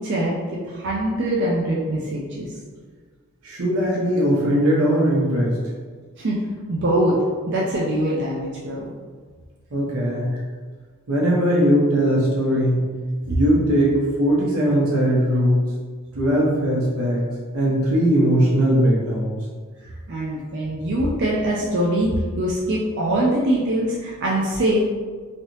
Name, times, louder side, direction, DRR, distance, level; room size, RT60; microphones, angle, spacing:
voice 1, 0.0-2.5 6.2-6.4 6.7-7.2 7.5-8.9 20.1-25.0, right 1 dB, 55° right, -4 dB, 0.4 m, -23 dB
voice 2, 3.4-5.5 9.7-10.3 11.1-12.9 13.3-15.6 16.1-17.3 17.5-19.4, equal, 90° right, -5 dB, 1.0 m, -19 dB
3.1 x 2.7 x 3.0 m, 1.5 s
head